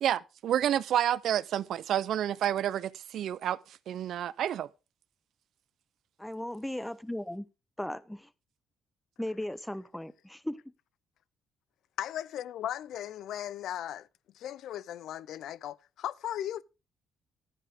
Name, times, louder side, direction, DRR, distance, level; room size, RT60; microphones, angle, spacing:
voice 1, 0.0-4.7, right 10 dB, 70° right, 0.5 m, -29 dB
voice 2, 6.2-7.4 7.8-8.2 9.2-10.6, left 1 dB, 5° left, 0.8 m, -36 dB
voice 3, 12.0-14.1 14.3-16.6, left 11 dB, 80° left, 0.4 m, -37 dB
11.5 x 9.9 x 3.5 m
cardioid pair, 90°, 0 cm